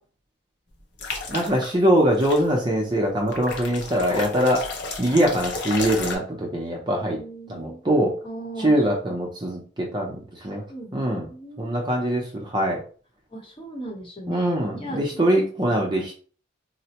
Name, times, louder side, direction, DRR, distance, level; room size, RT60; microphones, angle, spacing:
sound 1, 1.0-1.7 2.2-2.4 3.3-6.1, left 3 dB, 60° left, 0.7 m, -32 dB
voice 1, 1.3-4.7 5.0-7.2 7.5-8.1 8.6-10.6 10.9-11.3 11.6-12.8 14.3-16.1, equal, 20° right, 0 dB, 0.5 m, -23 dB
voice 2, 7.0-7.8 8.2-9.2 10.7-11.0 11.3-12.0 13.3-15.2, right 1 dB, 25° left, 0 dB, 0.9 m, -38 dB
4.0 x 2.1 x 2.9 m, 0.41 s
head